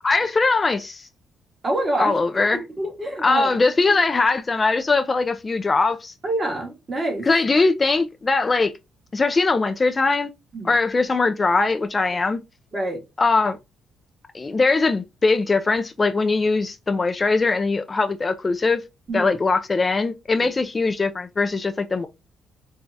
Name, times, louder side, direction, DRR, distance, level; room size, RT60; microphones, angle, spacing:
voice 1, 0.0-1.1 2.0-2.6 3.2-6.1 7.2-8.7 9.1-10.3 10.6-12.4 13.2-13.6 14.3-18.8 19.1-22.1, left 3 dB, 30° left, 0.3 m, -21 dB
voice 2, 1.6-2.4 2.8-3.5 6.2-7.3 10.5-10.7 12.7-13.0 19.1-19.3, right 1 dB, 35° right, 1.5 m, -26 dB
4.4 x 2.3 x 2.6 m
cardioid pair, 90°, 0 cm